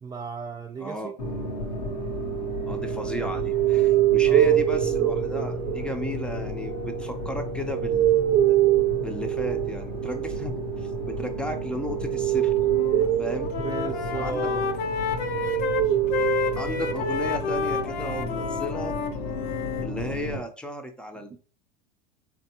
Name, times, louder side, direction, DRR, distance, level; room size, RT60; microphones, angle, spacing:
voice 1, 0.0-1.1 4.2-4.6 13.6-14.6 21.3-21.4, right 5 dB, 15° right, 3 dB, 0.4 m, -34 dB
voice 2, 0.8-1.1 2.7-8.1 8.5-8.6 9.0-12.5 13.2-13.5 14.1-14.7 16.6-19.0 19.8-21.4, equal, 5° left, 5 dB, 0.8 m, -34 dB
sound 1, 1.2-20.4, left 2 dB, 85° left, 1.0 m, -35 dB
sound 2, 1.2-17.5 17.9-18.7, right 13 dB, 60° right, 0.7 m, -26 dB
Wind instrument woodwind instrument, 12.6-13.1 13.4-19.9, left 6 dB, 50° left, 0.7 m, -30 dB
3.8 x 3.4 x 2.9 m, 0.39 s
hypercardioid pair, 95°, 21 cm